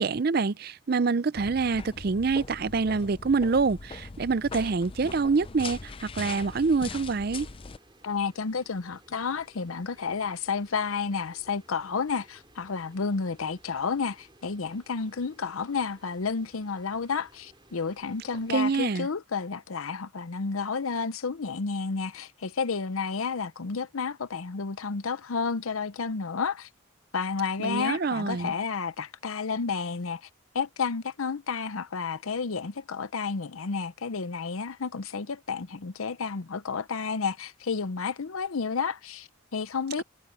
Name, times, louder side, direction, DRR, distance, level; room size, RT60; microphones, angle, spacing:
voice 1, 0.0-7.5 18.5-19.1 27.6-28.5, right 4 dB, 45° right, 0.5 m, -26 dB
sound 1, 1.4-7.8, left 4 dB, 25° left, 0.5 m, -41 dB
sound 2, 6.4-18.9, right 1 dB, 20° right, 5.1 m, -59 dB
voice 2, 8.0-26.7 27.1-30.3 30.5-40.0, left 5 dB, 85° left, 0.7 m, -31 dB
head